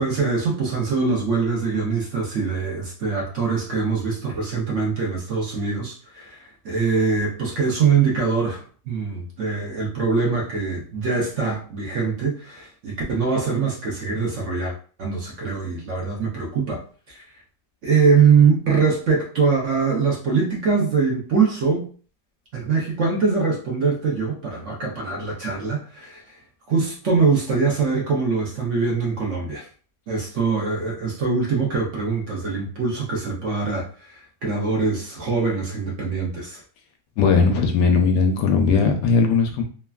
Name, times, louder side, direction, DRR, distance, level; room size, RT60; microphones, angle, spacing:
voice 1, 0.0-14.7 15.0-16.8 17.1-17.2 17.8-21.9 22.5-26.4 26.7-29.7 30.1-36.6, right 5 dB, 60° right, -2 dB, 0.8 m, -23 dB
voice 2, 37.2-39.6, left 5 dB, 85° left, 4 dB, 1.2 m, -18 dB
3.2 x 2.3 x 2.3 m, 0.41 s
omnidirectional pair, 1.8 m